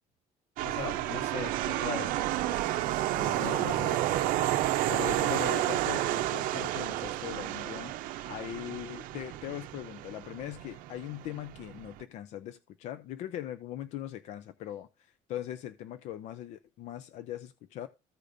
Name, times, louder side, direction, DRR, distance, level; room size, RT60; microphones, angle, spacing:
voice 1, 0.6-2.1 3.1-4.2, left 3 dB, 90° left, 5.1 m, -39 dB
sound 1, 0.6-12.0, right 14 dB, 75° right, 0.6 m, -31 dB
voice 2, 3.4-4.0 4.8-17.9, left 12 dB, 55° left, 0.5 m, -40 dB
14.5 x 5.0 x 2.6 m
cardioid pair, 175°, 14 cm